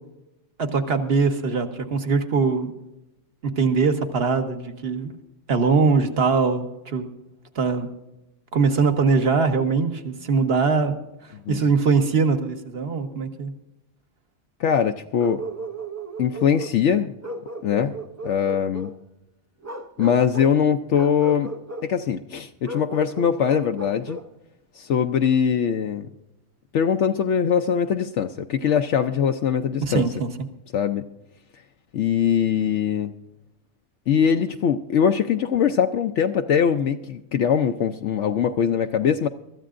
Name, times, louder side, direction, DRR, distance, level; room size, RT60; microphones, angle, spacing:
voice 1, 0.6-2.7 3.4-5.1 5.5-7.1 7.5-7.9 8.5-13.5 29.8-30.3, right 4 dB, 55° right, 7 dB, 1.4 m, -22 dB
voice 2, 14.6-15.4 16.2-17.1 17.6-17.9 18.2-18.9 20.0-21.5 21.8-24.2 24.8-26.1 26.7-30.1 30.7-31.1 31.9-33.1 34.1-39.3, left 7 dB, 70° left, 6 dB, 0.9 m, -22 dB
Bark, 15.2-16.8 17.2-19.0 19.6-20.6 20.9-21.9 22.6-24.3, right 1 dB, 20° right, 0.4 m, -35 dB
23.5 x 13.5 x 2.5 m, 0.94 s
omnidirectional pair, 1.3 m